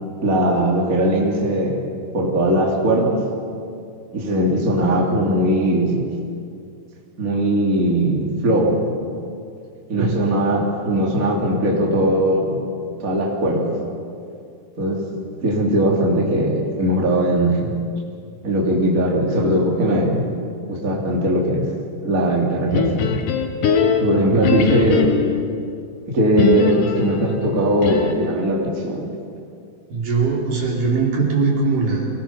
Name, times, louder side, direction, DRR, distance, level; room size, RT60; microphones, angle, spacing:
voice 1, 0.2-3.3 4.1-6.1 7.2-8.9 9.9-12.6 13.0-13.8 14.8-15.0 15.4-17.8 18.4-20.3 20.7-21.7 22.0-23.2 24.0-25.1 26.1-29.1, right 1 dB, 25° right, -3 dB, 2.2 m, -19 dB
sound 1, 22.7-25.5 26.4-28.4, left 7 dB, 65° left, 2.4 m, -22 dB
voice 2, 24.3-25.0 29.9-32.1, right 4 dB, 55° right, -3 dB, 4.7 m, -21 dB
25.0 x 19.0 x 5.8 m, 2.4 s
omnidirectional pair, 4.6 m